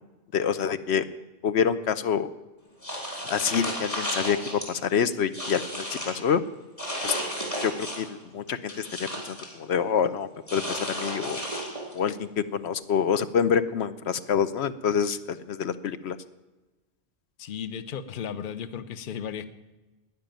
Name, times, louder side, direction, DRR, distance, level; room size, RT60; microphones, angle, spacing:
voice 1, 0.3-1.0 1.4-2.3 3.3-6.4 7.0-7.1 7.6-11.4 11.9-16.2, left 7 dB, 80° left, 12 dB, 1.0 m, -27 dB
sound 1, 2.8-4.7 5.1-6.2 6.8-8.1 8.5-9.5 10.5-12.0, equal, 35° left, 4.0 m, -33 dB
voice 2, 17.4-19.5, left 8 dB, 55° left, 13 dB, 0.8 m, -35 dB
12.5 x 9.9 x 9.1 m, 1.1 s
omnidirectional pair, 1.1 m